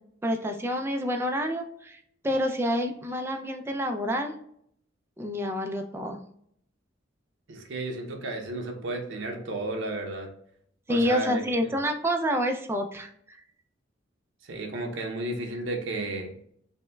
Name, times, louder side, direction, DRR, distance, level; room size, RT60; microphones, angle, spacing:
voice 1, 0.2-4.4 5.2-6.2 8.8-8.9 9.5-9.7 10.9-13.4, equal, 15° right, 4 dB, 0.3 m, -28 dB
voice 2, 7.5-10.3 10.9-11.7 14.4-16.3, right 2 dB, 80° right, 2 dB, 0.6 m, -33 dB
5.3 x 2.1 x 2.2 m, 0.67 s
head